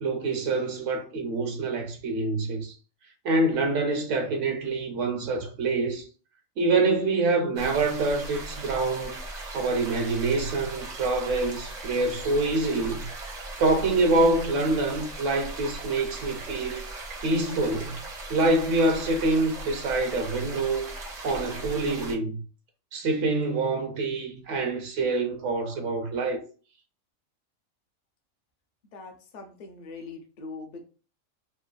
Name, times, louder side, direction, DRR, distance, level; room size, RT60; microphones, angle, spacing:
voice 1, 0.0-2.7 3.2-6.0 6.6-9.2 9.5-13.1 13.6-16.8 17.2-18.0 18.3-20.9 21.2-22.4 22.9-26.4, right 2 dB, 70° right, 0.9 m, -26 dB
sound 1, 7.6-22.2, right 2 dB, 50° right, 0.5 m, -38 dB
voice 2, 28.9-30.8, left 3 dB, 55° left, 0.5 m, -42 dB
3.1 x 2.1 x 2.4 m
omnidirectional pair, 1.4 m